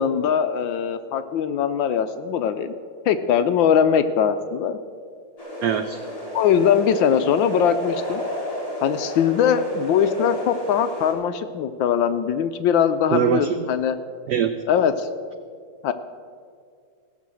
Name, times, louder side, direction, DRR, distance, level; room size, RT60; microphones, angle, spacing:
voice 1, 0.0-2.7 3.1-4.8 6.3-8.2 8.8-14.0 14.7-15.1 15.8-15.9, left 8 dB, 75° left, 10 dB, 1.2 m, -21 dB
sound 1, 5.4-11.1, left 1 dB, 15° left, 2.7 m, -32 dB
voice 2, 5.6-6.0 13.1-13.6 14.3-14.5, right 8 dB, 90° right, 9 dB, 0.9 m, -22 dB
16.5 x 6.4 x 7.5 m, 2.1 s
omnidirectional pair, 2.4 m